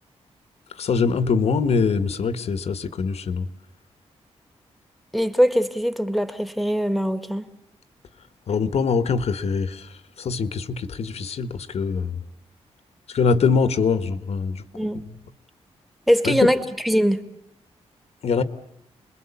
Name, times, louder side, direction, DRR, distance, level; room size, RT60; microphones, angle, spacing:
voice 1, 0.7-3.5 8.5-9.9 10.2-12.2 13.1-14.6 16.2-16.5 18.2-18.4, left 5 dB, 65° left, 12 dB, 1.5 m, -23 dB
voice 2, 5.1-7.4 14.7-15.0 16.1-17.2, equal, ahead, 10 dB, 1.9 m, -21 dB
30.0 x 22.0 x 8.5 m, 0.77 s
wide cardioid pair, 135°, 11 cm